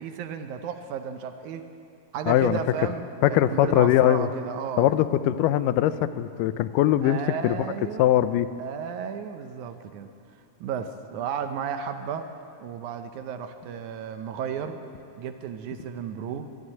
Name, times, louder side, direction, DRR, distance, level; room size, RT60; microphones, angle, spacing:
voice 1, 0.0-1.7 2.1-4.9 7.0-8.1 8.6-10.1 10.6-12.3 12.6-14.8 15.2-16.5, right 7 dB, 75° right, 8 dB, 2.0 m, -33 dB
voice 2, 2.3-2.6 3.2-4.3 4.8-7.6 8.0-8.5, left 12 dB, 90° left, 13 dB, 2.2 m, -21 dB
13.0 x 11.5 x 9.6 m, 2.4 s
omnidirectional pair, 3.7 m